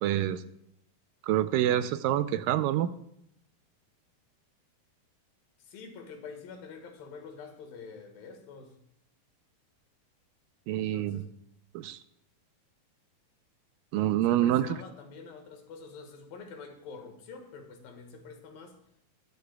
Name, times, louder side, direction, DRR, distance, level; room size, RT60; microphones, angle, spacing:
voice 1, 0.0-0.4 1.2-2.9 10.7-11.2 11.7-12.0 13.9-14.7, right 12 dB, 80° right, 12 dB, 2.1 m, -26 dB
voice 2, 5.6-8.7 10.7-11.3 14.3-18.8, left 5 dB, 80° left, 5 dB, 3.2 m, -46 dB
21.0 x 12.0 x 2.3 m, 0.75 s
omnidirectional pair, 4.2 m